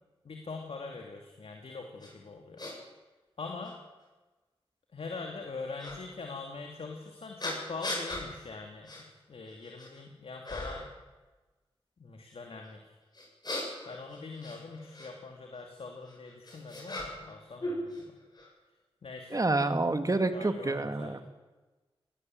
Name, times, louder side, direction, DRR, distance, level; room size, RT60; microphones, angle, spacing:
voice 1, 0.2-2.7 3.4-3.8 4.9-10.9 12.0-12.9 13.9-18.2 19.0-19.4 20.3-21.2, left 4 dB, 75° left, 2 dB, 2.6 m, -43 dB
sound 1, 2.0-2.1 2.6-2.7 3.6-3.7 5.8-6.0 7.4-8.3 8.9-9.0 9.5-10.0 10.4-10.9 13.1-15.1 16.1-17.3 17.6-18.5, left 1 dB, 45° left, 7.8 m, -38 dB
voice 2, 19.3-21.2, right 2 dB, 35° right, 8 dB, 2.1 m, -28 dB
20.5 x 18.0 x 7.7 m, 1.2 s
cardioid pair, 50°, 10 cm